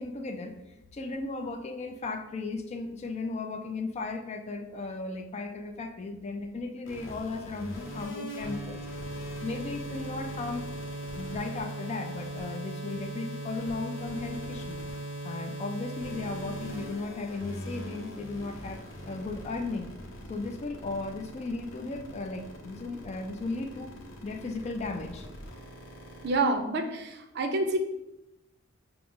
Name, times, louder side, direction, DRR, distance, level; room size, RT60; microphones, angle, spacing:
voice 1, 0.0-8.8 9.4-10.7 11.1-14.8 15.2-20.0 20.3-23.9 24.2-25.3, left 3 dB, 30° left, 6 dB, 0.3 m, -36 dB
sound 1, 6.9-26.4, right 1 dB, 70° left, 0.8 m, -40 dB
voice 2, 26.2-27.8, right 2 dB, 50° right, 6 dB, 0.5 m, -28 dB
5.7 x 2.0 x 3.6 m, 0.93 s
head